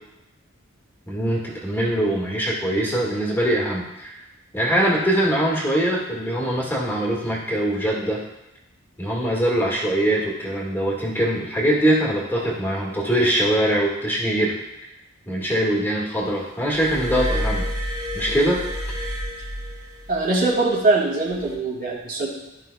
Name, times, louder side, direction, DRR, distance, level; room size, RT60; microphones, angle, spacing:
voice 1, 1.1-4.2 4.5-8.2 9.0-14.6 15.3-17.7 18.1-18.6, right 1 dB, 10° left, -4 dB, 1.8 m, -22 dB
Glass, 16.7-20.3 21.3-21.5, equal, 20° right, 2.4 m, -29 dB
voice 2, 20.1-22.3, right 3 dB, 40° right, -3 dB, 2.2 m, -22 dB
14.0 x 5.5 x 2.3 m, 0.94 s
head